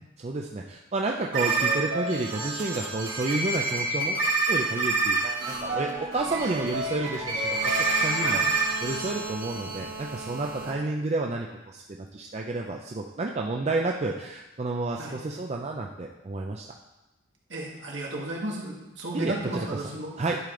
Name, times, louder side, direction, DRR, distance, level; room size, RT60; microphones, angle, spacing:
voice 1, 0.2-4.2 4.5-11.5 11.7-11.8 12.1-16.6 19.1-19.8 20.2-20.4, right 2 dB, 35° right, 0 dB, 0.5 m, -30 dB
sound 1, 1.3-10.7, right 3 dB, 80° right, 2.1 m, -28 dB
voice 2, 8.2-8.5 10.6-10.8 15.0-15.2 17.5-20.1, right 1 dB, 65° right, -3 dB, 1.8 m, -34 dB
10.5 x 5.1 x 3.8 m, 1.0 s
head